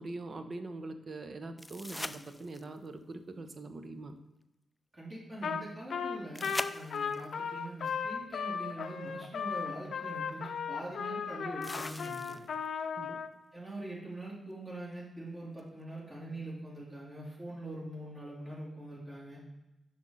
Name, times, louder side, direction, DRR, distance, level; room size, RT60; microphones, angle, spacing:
voice 1, 0.0-4.2 13.0-13.2, right 2 dB, 50° right, 8 dB, 0.8 m, -43 dB
sound 1, 1.6-2.9 6.3-7.3 9.2-9.3 11.6-12.7 15.6-15.7, left 1 dB, 15° left, 0.4 m, -41 dB
voice 2, 4.9-12.4 13.5-19.4, right 1 dB, 35° right, -6 dB, 2.7 m, -43 dB
Trumpet, 5.4-5.6 5.9-13.3, left 6 dB, 70° left, 0.5 m, -36 dB
5.9 x 5.1 x 5.6 m, 0.93 s
cardioid pair, 55°, 0 cm